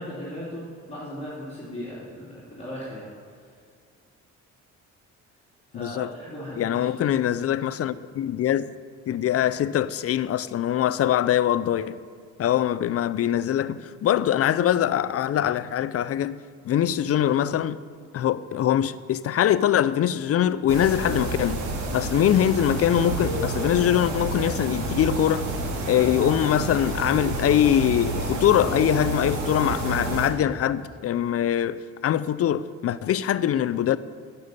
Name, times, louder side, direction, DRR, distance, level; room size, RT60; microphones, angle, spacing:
voice 1, 0.0-3.1 5.7-7.1, equal, 20° left, 2.7 m, -37 dB
voice 2, 5.7-6.1 6.6-8.7 9.1-12.0 12.4-16.4 16.6-17.8 18.1-21.6 21.9-25.4 25.9-34.0, left 10 dB, 50° left, 0.5 m, -23 dB
sound 1, 20.7-30.3, right 2 dB, 70° right, 2.0 m, -29 dB
9.4 x 6.9 x 8.2 m
cardioid pair, 90°, 30 cm